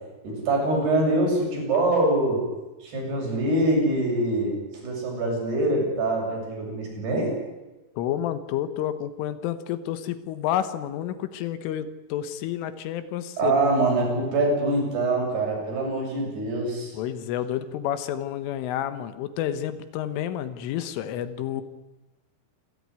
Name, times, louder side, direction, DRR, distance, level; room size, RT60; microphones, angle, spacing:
voice 1, 0.2-2.4 2.8-7.3 13.4-16.9, right 2 dB, 55° right, 0 dB, 9.1 m, -24 dB
voice 2, 8.0-13.5 16.9-21.6, left 11 dB, 80° left, 12 dB, 3.7 m, -30 dB
27.5 x 15.0 x 9.7 m, 1.1 s
omnidirectional pair, 5.7 m